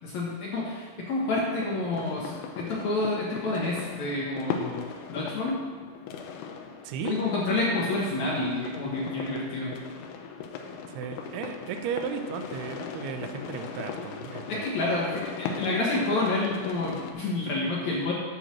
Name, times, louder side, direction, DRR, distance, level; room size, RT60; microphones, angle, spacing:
voice 1, 0.0-5.6 7.0-9.8 14.5-18.1, left 2 dB, 65° left, -4 dB, 2.0 m, -29 dB
sound 1, 1.3-17.1, left 6 dB, 85° left, 2.6 m, -39 dB
voice 2, 6.8-7.2 10.9-14.7, right 7 dB, 85° right, 6 dB, 2.6 m, -35 dB
10.5 x 4.0 x 7.3 m, 1.5 s
omnidirectional pair, 4.6 m